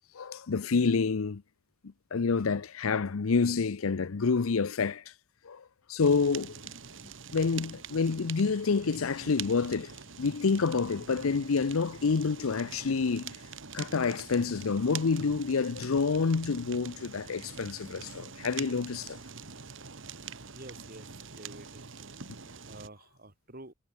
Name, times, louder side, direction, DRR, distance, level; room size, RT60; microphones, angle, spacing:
voice 1, 0.1-1.4 2.1-5.1 5.4-6.6 7.3-13.4 13.7-19.2, left 4 dB, 90° left, 0.6 m, -28 dB
Fire, 6.0-22.9, right 6 dB, 65° right, 1.9 m, -44 dB
voice 2, 20.5-21.9 22.6-23.7, right 2 dB, 45° right, 2.7 m, -48 dB
head